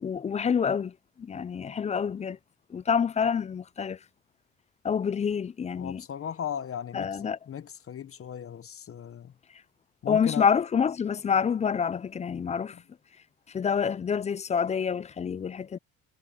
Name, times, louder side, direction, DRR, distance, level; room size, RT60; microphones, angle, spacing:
voice 1, 0.0-2.4 2.7-4.0 4.8-6.0 6.9-7.4 10.1-12.8 13.5-15.8, left 7 dB, 20° left, 0.3 m, -27 dB
voice 2, 5.8-9.3 10.0-10.5 12.7-12.8, left 8 dB, 40° left, 1.0 m, -37 dB
cardioid pair, 90°, 33 cm